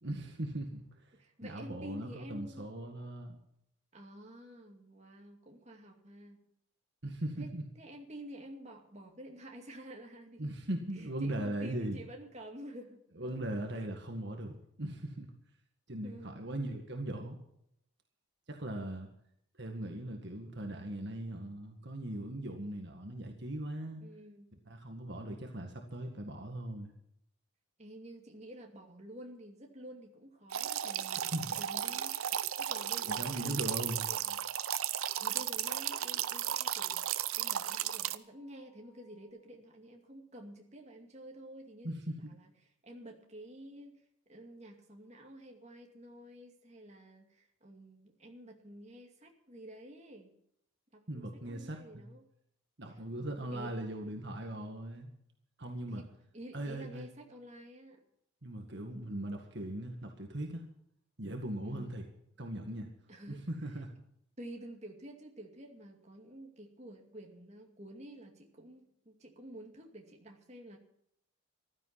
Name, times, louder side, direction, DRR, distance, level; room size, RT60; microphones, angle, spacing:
voice 1, 0.0-3.4 7.0-7.6 10.4-12.0 13.2-15.3 15.9-17.4 18.5-19.1 19.6-24.0 24.7-26.9 31.3-31.5 33.1-34.0 41.8-42.3 51.1-52.1 52.8-55.1 55.6-56.0 56.5-57.1 58.4-60.6 61.2-62.0 62.4-62.9 63.3-63.9, right 1 dB, 55° right, 3 dB, 1.9 m, -39 dB
voice 2, 1.1-2.7 3.9-6.5 7.4-10.5 10.9-13.3 13.7-13.9 16.0-16.4 18.8-19.1 24.0-24.5 27.8-32.3 32.6-33.8 34.1-34.4 35.2-41.9 42.2-42.5 42.8-50.3 50.9-52.3 52.9-53.8 55.9-58.0 61.6-61.9 63.1-63.5 63.8-63.9 64.4-70.8, right 1 dB, 30° right, 2 dB, 2.4 m, -50 dB
sound 1, 30.5-38.2, right 10 dB, 80° right, 0.7 m, -35 dB
sound 2, 33.2-39.3, left 6 dB, 70° left, 7.9 m, -71 dB
15.0 x 12.5 x 5.8 m, 0.73 s
head